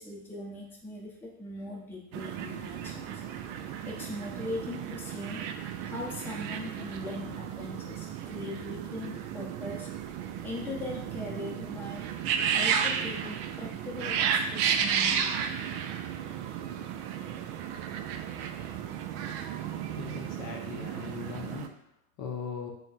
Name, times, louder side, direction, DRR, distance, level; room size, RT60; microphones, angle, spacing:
voice 1, 0.0-3.2 3.8-5.4 5.9-9.9 10.4-12.1 12.5-15.4, left 2 dB, 5° left, -3 dB, 0.7 m, -40 dB
sound 1, 2.1-21.7, right 8 dB, 50° right, 0.5 m, -33 dB
voice 2, 20.0-21.7 22.2-22.7, left 6 dB, 40° left, 1 dB, 0.7 m, -39 dB
3.4 x 2.2 x 4.0 m, 0.74 s
hypercardioid pair, 95°, 45 cm